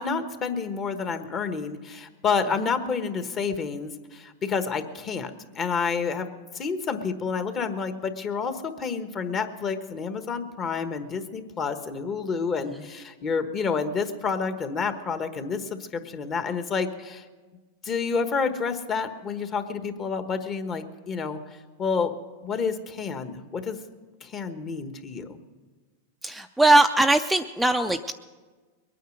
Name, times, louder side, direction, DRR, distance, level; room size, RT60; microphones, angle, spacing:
voice 1, 0.0-5.3 5.6-6.3 6.5-15.6 15.9-17.2 17.8-21.4 21.8-22.1 22.4-23.8 24.2-25.4, left 5 dB, 30° left, 9 dB, 1.2 m, -29 dB
voice 2, 26.2-28.1, right 2 dB, 5° right, 5 dB, 0.5 m, -20 dB
22.0 x 9.3 x 6.4 m, 1.4 s
hypercardioid pair, 125°, 0 cm